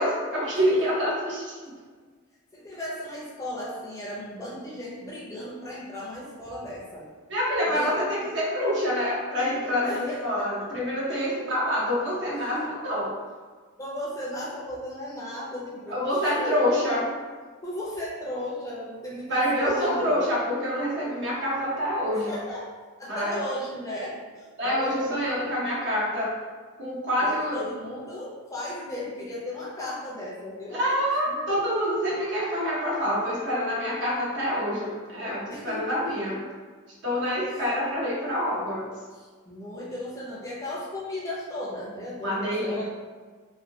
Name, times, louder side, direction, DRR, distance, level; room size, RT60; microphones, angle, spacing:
voice 1, 0.0-1.7 7.3-13.2 15.9-17.1 19.3-22.3 23.1-23.4 24.6-26.3 26.8-27.6 30.7-36.4 37.0-38.9 42.2-42.9, equal, 60° right, -6 dB, 1.0 m, -26 dB
voice 2, 0.5-0.8 2.5-7.1 7.7-8.2 9.8-10.7 11.1-11.5 12.1-13.2 13.8-16.8 17.6-20.3 22.1-22.7 23.0-25.4 27.2-30.9 31.3-31.4 35.5-36.3 37.5-37.8 39.1-42.9, left 1 dB, 15° left, -5 dB, 0.6 m, -36 dB
3.0 x 2.7 x 2.7 m, 1.5 s
head